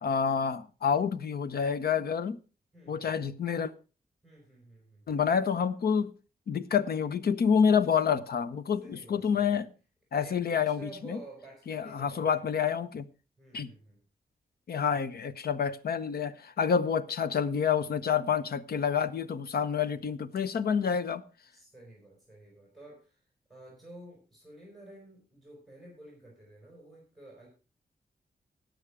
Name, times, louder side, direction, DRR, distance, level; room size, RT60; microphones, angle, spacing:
voice 1, 0.0-2.4 2.9-3.7 5.1-6.1 6.5-9.7 10.1-11.2 11.7-13.0 13.5-13.7 14.7-21.2, left 7 dB, 85° left, 0.8 m, -28 dB
voice 2, 2.7-3.2 4.2-5.2 8.8-9.6 10.2-12.4 13.4-14.0 21.5-23.2 23.5-27.5, right 1 dB, ahead, 4.8 m, -51 dB
18.0 x 6.4 x 4.8 m
wide cardioid pair, 175°, 16 cm